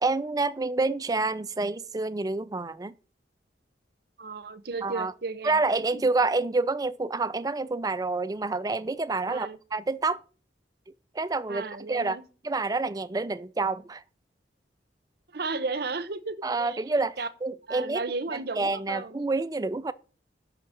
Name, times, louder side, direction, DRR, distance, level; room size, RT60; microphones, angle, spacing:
voice 1, 0.0-2.9 4.8-5.1 5.4-10.2 11.1-12.2 12.4-14.0 16.4-18.0 18.5-19.9, right 3 dB, 20° right, 0.4 m, -28 dB
voice 2, 4.2-5.6 5.9-6.1 9.3-9.6 11.5-12.2 15.3-16.8 17.2-17.3 17.7-19.2, right 3 dB, 60° right, 0.8 m, -34 dB
6.2 x 5.8 x 6.9 m
head